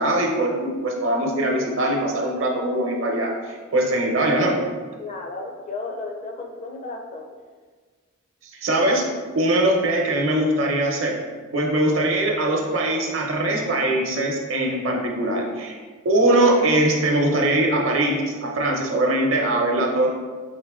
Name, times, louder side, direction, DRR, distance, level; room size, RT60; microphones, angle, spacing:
voice 1, 0.0-4.6 8.5-9.0 9.3-11.2 11.5-15.8 16.0-20.1, right 1 dB, 65° right, 0 dB, 0.8 m, -21 dB
voice 2, 5.0-7.4, left 3 dB, 35° left, 2 dB, 0.5 m, -34 dB
4.4 x 2.9 x 3.6 m, 1.5 s
head